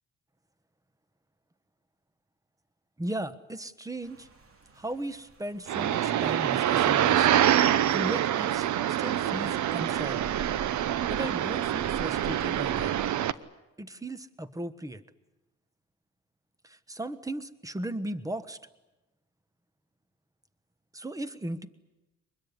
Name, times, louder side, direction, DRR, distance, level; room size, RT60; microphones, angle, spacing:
voice 1, 3.0-4.3 4.7-7.3 7.9-10.3 11.1-12.9 13.8-15.0 16.6-18.6 20.9-21.7, right 1 dB, 10° right, 14 dB, 1.3 m, -36 dB
Rain, 4.0-13.1, right 3 dB, 45° right, 2.7 m, -48 dB
sound 1, 5.7-13.3, right 11 dB, 70° right, 0.9 m, -26 dB
24.0 x 21.0 x 9.8 m, 1.1 s
cardioid pair, 90°, 30 cm